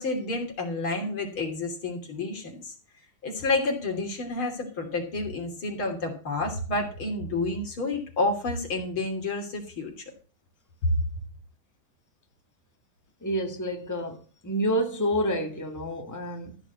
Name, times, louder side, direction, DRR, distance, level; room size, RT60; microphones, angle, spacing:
voice 1, 0.0-2.7 3.2-10.0 10.8-11.0, left 2 dB, 85° left, 3.9 m, -29 dB
voice 2, 13.2-16.6, equal, 10° left, 1.7 m, -29 dB
14.5 x 5.1 x 8.3 m
omnidirectional pair, 2.2 m